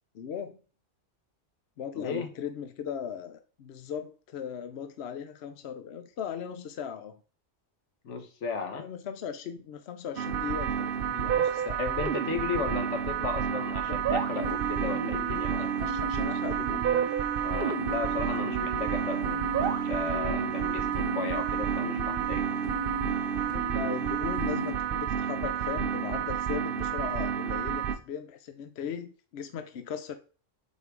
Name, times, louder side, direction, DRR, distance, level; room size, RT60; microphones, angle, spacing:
voice 1, 0.1-0.6 1.8-7.2 8.8-11.8 15.6-16.9 23.5-30.2, left 8 dB, 65° left, 9 dB, 0.9 m, -38 dB
voice 2, 1.9-2.3 8.0-8.9 11.6-15.7 17.4-19.5 19.9-22.5, left 5 dB, 80° left, 7 dB, 1.3 m, -35 dB
sound 1, 10.2-28.0, right 8 dB, 55° right, 0.8 m, -30 dB
sound 2, 14.4-24.7, right 4 dB, 10° right, 1.5 m, -35 dB
5.5 x 4.4 x 4.6 m, 0.37 s
omnidirectional pair, 1.2 m